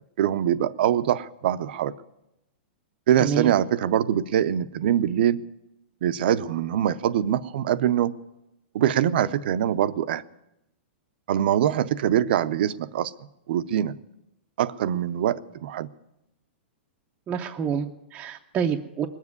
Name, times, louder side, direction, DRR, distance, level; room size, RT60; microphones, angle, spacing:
voice 1, 0.2-1.9 3.1-5.4 6.0-8.1 8.7-10.2 11.3-13.1 13.5-14.0 14.6-15.9, right 10 dB, 60° right, 14 dB, 0.6 m, -23 dB
voice 2, 3.2-3.5 17.3-19.1, right 7 dB, 20° right, 1 dB, 0.6 m, -28 dB
20.0 x 7.4 x 9.5 m, 0.90 s
hypercardioid pair, 155°, 6 cm